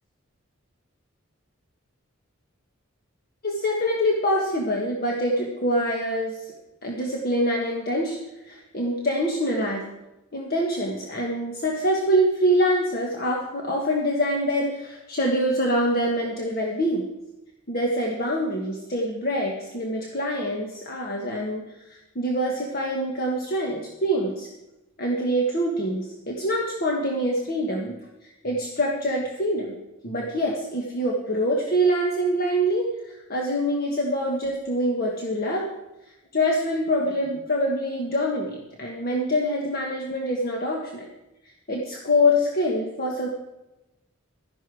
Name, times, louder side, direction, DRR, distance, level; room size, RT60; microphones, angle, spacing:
voice 1, 3.4-6.5 6.8-8.2 8.5-9.8 10.3-17.0 17.7-24.5 25.0-28.0 28.2-29.7 30.0-35.7 36.3-41.1 41.7-43.3, equal, 45° left, -1 dB, 1.4 m, -25 dB
12.5 x 11.0 x 4.8 m, 0.96 s
head